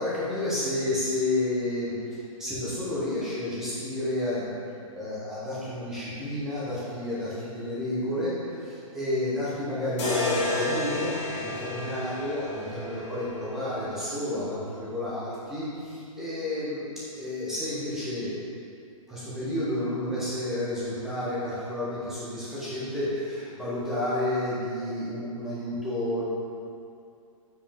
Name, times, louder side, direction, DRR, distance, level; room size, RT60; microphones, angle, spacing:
voice 1, 0.0-4.5 4.9-16.8 17.1-18.3 19.1-26.2, left 1 dB, ahead, -11 dB, 0.6 m, -31 dB
sound 1, 10.0-14.1, left 2 dB, 55° left, 1.4 m, -31 dB
5.4 x 5.2 x 3.4 m, 2.5 s
hypercardioid pair, 180°, 18 cm